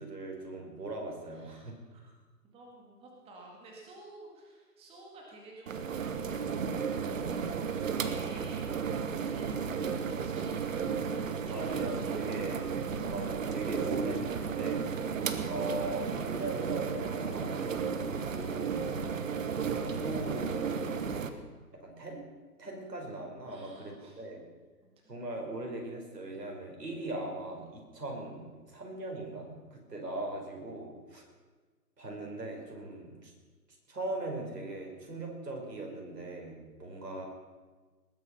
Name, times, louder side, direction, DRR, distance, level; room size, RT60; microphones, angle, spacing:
voice 1, 0.0-1.7 11.5-12.6 13.1-14.9 15.4-18.8 19.7-20.8 21.8-22.2 22.6-24.4 25.1-31.3 32.0-33.3 33.9-37.3, right 2 dB, 80° right, 1 dB, 5.0 m, -40 dB
voice 2, 1.3-2.1 2.4-6.3 7.8-8.7 9.0-12.6 23.5-24.2 24.8-25.2 36.8-37.1, right 2 dB, 10° right, -1 dB, 2.1 m, -52 dB
sound 1, 5.7-21.3, right 6 dB, 55° right, 1.3 m, -33 dB
20.0 x 9.4 x 5.6 m, 1.3 s
figure-of-eight pair, 140°, 48 cm